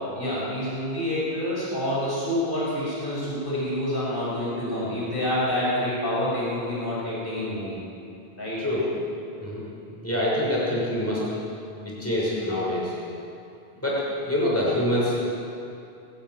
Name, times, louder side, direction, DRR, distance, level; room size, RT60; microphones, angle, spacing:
voice 1, 0.2-7.8 8.4-8.6, left 1 dB, 60° left, -7 dB, 6.8 m, -27 dB
voice 2, 8.6-8.9 9.4-9.6 10.0-11.2 11.8-12.9 13.8-15.2, left 1 dB, 15° left, -6 dB, 6.5 m, -25 dB
20.0 x 14.0 x 9.4 m, 2.6 s
omnidirectional pair, 1.0 m